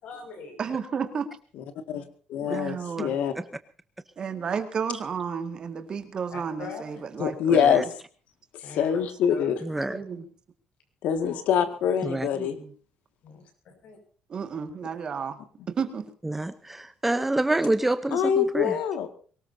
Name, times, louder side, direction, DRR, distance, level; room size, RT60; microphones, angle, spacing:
voice 1, 0.0-0.6 6.3-7.0 8.6-9.0 9.3-10.2 13.2-14.0, left 4 dB, 60° left, 5 dB, 6.0 m, -42 dB
voice 2, 0.6-1.3 2.4-3.2 4.2-7.9 9.9-10.3 12.3-12.7 14.3-15.4 15.7-16.1, right 6 dB, 35° right, 8 dB, 1.9 m, -32 dB
voice 3, 2.3-3.3 7.2-7.9 8.7-9.6 11.0-12.6 18.1-19.1, left 8 dB, 75° left, 9 dB, 1.9 m, -24 dB
voice 4, 9.6-10.0 12.0-12.3 16.3-18.7, right 2 dB, 10° right, 11 dB, 0.7 m, -27 dB
23.0 x 19.0 x 2.7 m, 0.41 s
cardioid pair, 170°, 2 cm